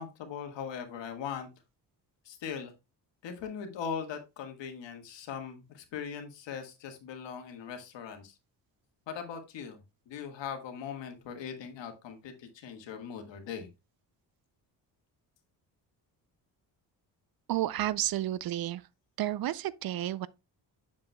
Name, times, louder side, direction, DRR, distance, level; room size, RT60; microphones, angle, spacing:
voice 1, 0.0-1.5 2.2-2.7 3.2-8.4 9.1-9.8 10.1-13.7, left 7 dB, 80° left, 1.6 m, -40 dB
voice 2, 17.5-18.8 19.2-20.3, right 13 dB, 55° right, 0.5 m, -31 dB
7.6 x 7.2 x 2.2 m
cardioid pair, 80°, 43 cm